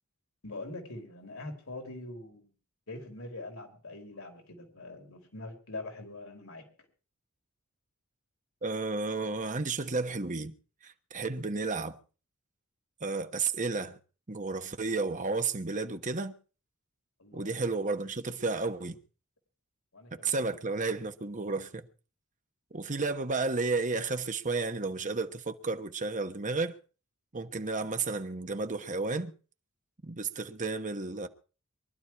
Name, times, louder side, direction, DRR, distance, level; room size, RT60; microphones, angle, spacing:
voice 1, 0.4-2.5 2.9-6.6 17.2-17.6 19.9-20.4, left 2 dB, 70° left, 4.8 m, -43 dB
voice 2, 8.6-10.5 10.8-12.0 13.0-14.0 14.3-16.3 17.3-19.0 20.2-21.9 22.7-26.7 27.3-29.3 30.0-31.3, right 3 dB, 35° right, 1.2 m, -32 dB
23.5 x 12.0 x 4.7 m
head